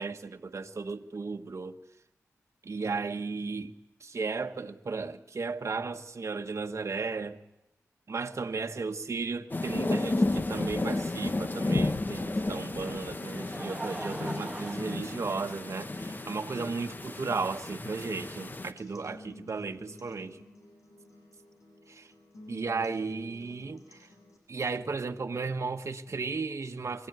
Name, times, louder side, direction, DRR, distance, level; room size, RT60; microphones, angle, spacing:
voice 1, 0.0-1.8 2.6-3.7 4.0-7.4 8.1-20.4 21.9-22.1 22.5-24.1 24.5-27.1, right 4 dB, 55° right, 4 dB, 1.4 m, -35 dB
sound 1, 9.5-18.7, left 2 dB, 35° left, 1.2 m, -32 dB
Laughter, 13.0-16.1 16.9-17.0 18.4-18.5, right 1 dB, 15° right, 1.3 m, -42 dB
sound 2, 16.4-24.4, left 1 dB, 70° left, 7.7 m, -52 dB
23.5 x 16.0 x 9.3 m, 0.91 s
cardioid pair, 60°, 6 cm